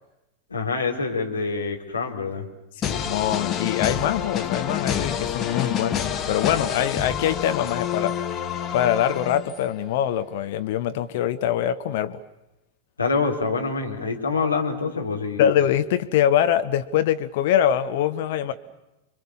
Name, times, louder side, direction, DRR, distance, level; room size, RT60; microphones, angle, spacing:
voice 1, 0.5-2.5 10.9-11.0 13.0-15.4, left 4 dB, 75° left, 1 dB, 4.0 m, -26 dB
voice 2, 2.8-8.2 8.7-12.2 15.4-18.5, left 10 dB, 50° left, 10 dB, 1.0 m, -23 dB
sound 1, 2.8-9.8, left 9 dB, 25° left, 1.6 m, -28 dB
30.0 x 24.0 x 7.2 m, 0.97 s
figure-of-eight pair, 90°, 0 cm